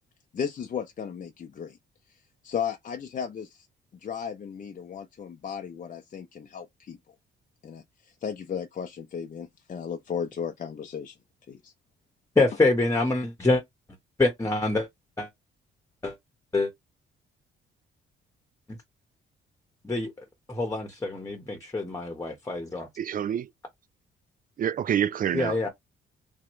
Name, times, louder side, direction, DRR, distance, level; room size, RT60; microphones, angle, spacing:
voice 1, 0.3-1.8 2.1-3.7 3.9-7.0 7.6-11.2 11.5-11.7, left 7 dB, 40° left, 0.6 m, -35 dB
voice 2, 12.4-13.6 14.2-14.9 15.2-15.3 16.0-16.1 16.5-16.7 19.8-20.1 20.5-22.9 25.3-25.7, left 2 dB, 15° left, 1.2 m, -25 dB
voice 3, 23.0-23.5 24.6-25.7, right 9 dB, 45° right, 0.4 m, -27 dB
3.6 x 3.0 x 3.1 m
cardioid pair, 90°, 20 cm